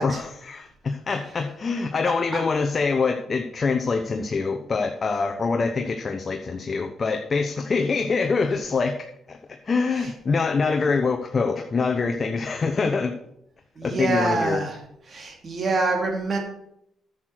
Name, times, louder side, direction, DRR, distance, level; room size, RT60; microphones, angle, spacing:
voice 1, 0.0-13.1 13.8-14.6, left 4 dB, 35° left, 5 dB, 0.9 m, -25 dB
voice 2, 13.8-14.8 15.1-16.4, right 3 dB, 45° right, 1 dB, 2.7 m, -26 dB
9.7 x 6.6 x 6.1 m, 0.78 s
cardioid pair, 90°, 0 cm